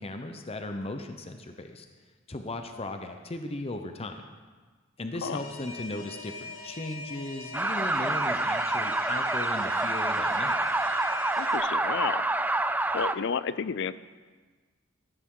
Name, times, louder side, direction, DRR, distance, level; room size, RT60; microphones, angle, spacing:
voice 1, 0.0-1.8 2.3-4.2 5.0-10.6, left 2 dB, 30° left, 6 dB, 0.8 m, -37 dB
Alarm, 5.3-11.6, left 3 dB, 85° left, 2.3 m, -42 dB
sound 1, 7.5-13.1, right 2 dB, 10° right, 0.3 m, -27 dB
voice 2, 11.4-12.2 12.9-14.0, left 6 dB, 60° left, 16 dB, 0.5 m, -31 dB
14.5 x 13.5 x 3.8 m, 1.4 s
head